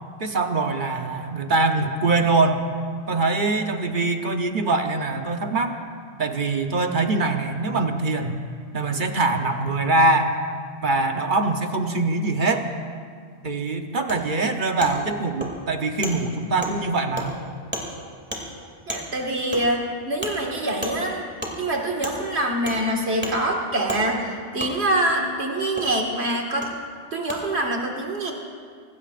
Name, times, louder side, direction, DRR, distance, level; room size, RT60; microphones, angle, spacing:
voice 1, 0.2-2.6 3.1-5.7 6.2-8.4 8.7-10.4 10.8-12.7 13.4-17.4, right 3 dB, 50° right, 5 dB, 1.0 m, -23 dB
Wood, 14.1-14.2 14.8-14.9 15.4-15.5 16.0-16.1 16.6-16.7 17.1-17.3 17.7-17.9 18.3-18.4 18.9-19.0 19.5-19.6 20.2-20.3 20.8-20.9 21.4-21.5 22.0-22.1 22.6-22.8 23.2-23.3 23.9-24.0 24.6-24.7 25.8-25.9 26.6-26.7 27.3-27.4, equal, 10° right, 2.5 m, -31 dB
voice 2, 18.9-21.3 21.6-26.7 27.1-28.3, right 1 dB, 70° right, 0 dB, 2.1 m, -25 dB
25.5 x 20.0 x 2.5 m, 2.1 s
omnidirectional pair, 1.1 m